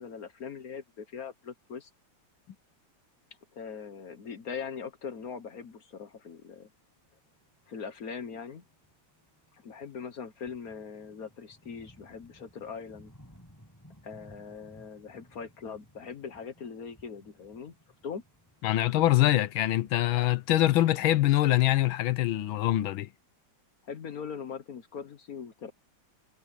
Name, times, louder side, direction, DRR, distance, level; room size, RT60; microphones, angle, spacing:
voice 1, 0.0-1.9 3.5-6.7 7.7-8.6 9.6-13.1 14.0-17.7 18.0-18.2 23.8-25.7, left 6 dB, 50° left, 1.4 m, -41 dB
sound 1, 6.8-21.1, equal, 10° left, 7.2 m, -59 dB
voice 2, 18.6-23.1, left 14 dB, 80° left, 1.7 m, -24 dB
omnidirectional pair, 2.2 m